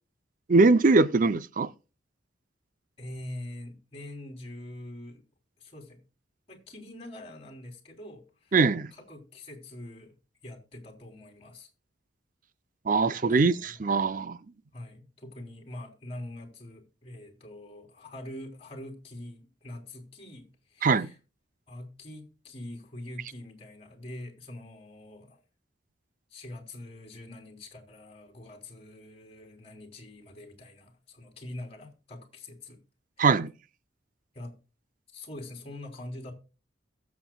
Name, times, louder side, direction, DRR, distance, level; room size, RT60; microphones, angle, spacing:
voice 1, 0.5-1.7 8.5-8.9 12.9-14.4 20.8-21.1 33.2-33.5, right 3 dB, 45° right, 0.5 m, -22 dB
voice 2, 3.0-5.2 5.6-6.0 6.5-8.5 8.9-10.1 10.4-11.7 13.3-13.8 14.7-21.2 21.7-25.4 26.3-32.8 33.2-33.3 34.3-34.5 35.1-36.3, left 1 dB, 30° left, 3.4 m, -44 dB
22.0 x 7.3 x 2.3 m
head